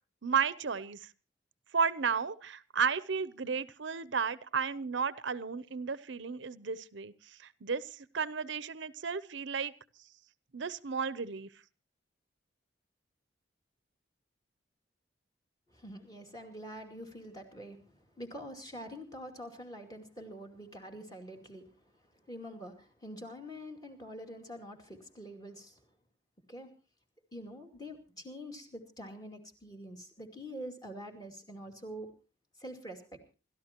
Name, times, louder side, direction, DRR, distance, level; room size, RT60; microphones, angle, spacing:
voice 1, 0.2-1.0 1.7-7.1 7.6-9.7 10.5-11.5, right 6 dB, 75° right, 17 dB, 0.7 m, -33 dB
voice 2, 15.7-25.9 26.5-26.7 27.3-32.1 32.6-33.2, equal, 20° left, 3 dB, 2.4 m, -46 dB
28.0 x 13.5 x 3.0 m, 0.33 s
head